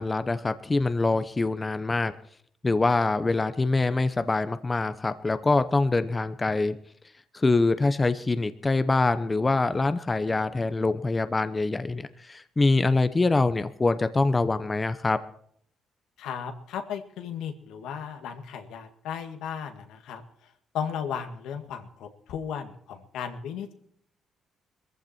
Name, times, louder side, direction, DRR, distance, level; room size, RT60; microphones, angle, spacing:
voice 1, 0.0-2.1 2.6-6.8 7.3-15.2, left 3 dB, 25° left, 12 dB, 0.9 m, -24 dB
voice 2, 16.2-23.7, left 7 dB, 85° left, 6 dB, 1.9 m, -35 dB
21.0 x 15.0 x 4.5 m, 0.64 s
cardioid pair, 90°, 0 cm